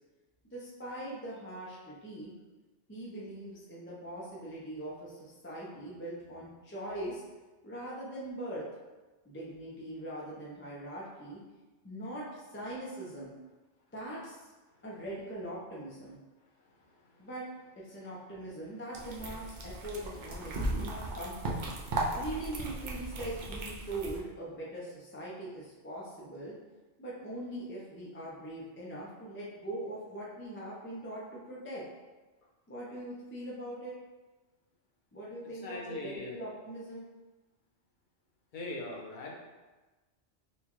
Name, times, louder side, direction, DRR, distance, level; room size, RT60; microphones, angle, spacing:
voice 1, 0.5-2.3 2.9-7.2 7.6-8.7 9.2-11.4 11.8-13.3 13.9-14.4 14.8-16.2 17.2-17.4 17.8-21.6 22.1-26.6 27.0-31.8 32.7-33.9 35.1-37.1, right 1 dB, 15° left, -6 dB, 0.4 m, -41 dB
sound 1, 18.9-24.2, right 2 dB, 55° right, 0.5 m, -36 dB
voice 2, 35.6-36.3 38.5-39.3, left 2 dB, 50° left, -2 dB, 0.7 m, -40 dB
4.2 x 2.3 x 3.0 m, 1.2 s
omnidirectional pair, 1.3 m